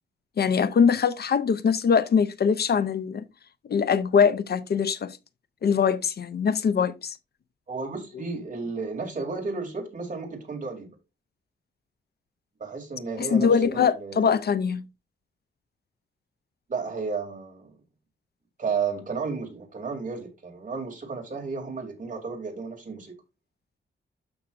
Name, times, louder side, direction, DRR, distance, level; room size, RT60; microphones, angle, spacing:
voice 1, 0.4-3.2 3.7-5.2 5.6-7.2 13.2-14.8, left 6 dB, 55° left, 0.5 m, -22 dB
voice 2, 7.7-10.9 12.6-14.3 16.7-17.7 18.6-23.2, right 4 dB, 40° right, 2.8 m, -33 dB
12.5 x 5.7 x 2.5 m
wide cardioid pair, 150°, 20 cm